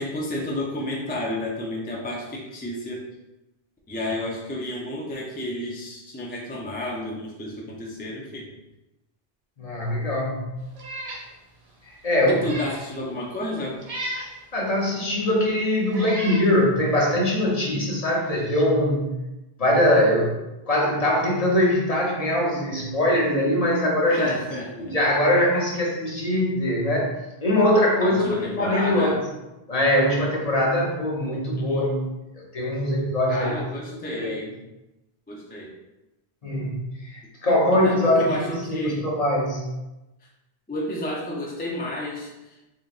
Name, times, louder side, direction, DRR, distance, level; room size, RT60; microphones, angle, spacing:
voice 1, 0.0-3.0 3.9-8.5 12.3-13.8 24.1-24.9 28.0-29.2 31.6-31.8 33.3-34.5 35.3-35.7 37.5-37.6 37.8-39.1 40.7-42.6, left 1 dB, 15° left, -3 dB, 0.3 m, -31 dB
voice 2, 9.6-10.4 11.8-12.4 14.5-19.1 19.6-24.3 24.7-27.1 27.4-29.2 29.7-32.1 32.3-33.6 33.9-34.3 36.4-39.6, left 1 dB, 40° left, -3 dB, 0.8 m, -22 dB
Meow, 10.7-11.3 11.7-11.8 12.3-12.8 13.8-14.3 15.2-15.3 15.9-16.5, right 1 dB, 40° right, 0.8 m, -34 dB
3.8 x 3.3 x 2.4 m, 0.98 s
omnidirectional pair, 1.0 m